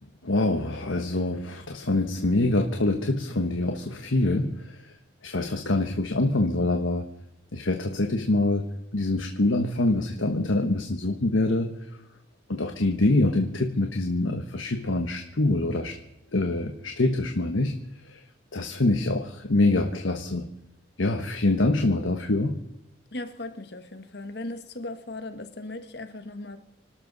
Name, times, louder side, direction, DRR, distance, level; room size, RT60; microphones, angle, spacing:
voice 1, 0.2-4.9 5.2-7.1 7.5-11.8 12.5-16.0 16.3-17.8 18.0-18.2 18.5-20.5 21.0-22.6, left 2 dB, 85° left, 5 dB, 1.3 m, -25 dB
voice 2, 23.1-26.6, left 2 dB, 55° left, 9 dB, 1.4 m, -37 dB
26.0 x 12.5 x 4.1 m, 0.88 s
head